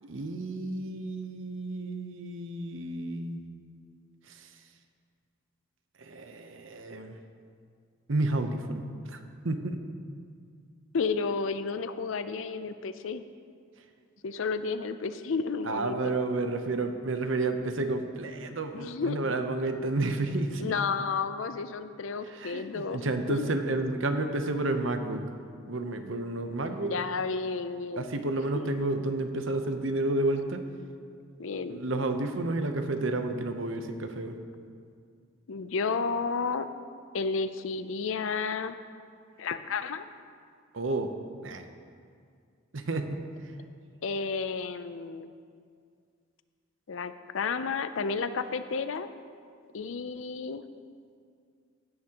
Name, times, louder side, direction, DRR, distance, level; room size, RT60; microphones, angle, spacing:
voice 1, 0.0-3.4 4.3-4.5 6.0-7.2 8.1-9.8 15.6-20.7 22.2-25.3 25.7-26.9 28.0-30.6 31.7-34.4 40.7-41.1 41.4-41.7 42.7-43.2, right 2 dB, 70° right, 7 dB, 0.8 m, -31 dB
voice 2, 10.9-13.2 14.2-16.1 18.7-19.2 20.6-23.5 26.8-28.1 28.5-28.7 31.4-31.8 35.5-36.7 37.1-38.8 39.4-40.1 44.0-45.3 46.9-49.1 49.7-50.7, left 5 dB, 70° left, 12 dB, 0.5 m, -32 dB
16.0 x 9.6 x 2.9 m, 2.2 s
head